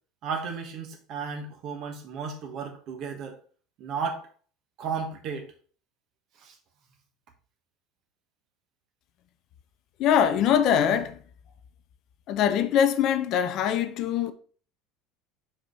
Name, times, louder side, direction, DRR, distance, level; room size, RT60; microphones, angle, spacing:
voice 1, 0.2-3.4 3.8-4.3 4.8-5.5 6.4-6.6, right 5 dB, 50° right, 1.3 m, -34 dB
voice 2, 10.0-11.2 12.3-14.3, left 9 dB, 50° left, 0.5 m, -23 dB
4.8 x 4.7 x 4.2 m
figure-of-eight pair, 70°, 0 cm